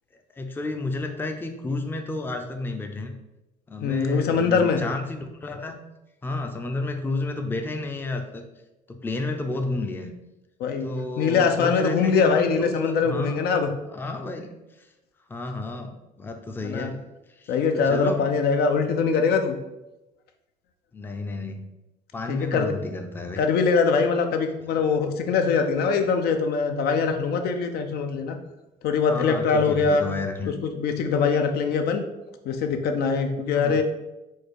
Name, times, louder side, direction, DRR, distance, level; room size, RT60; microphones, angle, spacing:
voice 1, 0.3-3.2 3.7-5.8 6.2-8.5 8.9-10.1 10.8-13.4 13.9-14.9 15.3-17.0 17.3-18.3 20.9-21.7 22.1-23.4 29.0-30.5 33.6-33.8, left 2 dB, 10° left, 5 dB, 0.4 m, -31 dB
voice 2, 3.8-4.8 10.6-10.9 11.2-13.7 16.6-16.9 17.5-19.6 22.3-22.7 23.4-28.4 28.8-30.1 30.6-32.0 32.4-33.8, left 5 dB, 70° left, 6 dB, 0.6 m, -22 dB
4.4 x 2.4 x 4.7 m, 0.98 s
cardioid pair, 110°, 17 cm